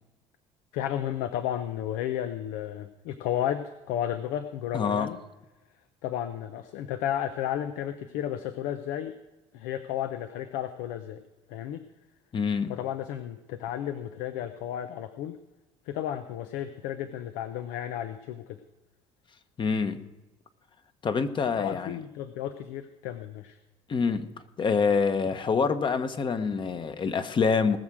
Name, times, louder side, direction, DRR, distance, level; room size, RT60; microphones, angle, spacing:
voice 1, 0.7-5.2 6.0-9.2 9.5-11.2 11.5-11.8 12.7-15.4 15.9-18.6 21.6-23.6, left 11 dB, 80° left, 10 dB, 0.8 m, -33 dB
voice 2, 4.7-5.1 12.3-12.8 19.6-20.0 21.0-22.0 23.9-24.3 24.6-27.8, left 5 dB, 35° left, 9 dB, 1.2 m, -26 dB
19.5 x 6.6 x 6.2 m, 1.1 s
supercardioid pair, 95°, 14 cm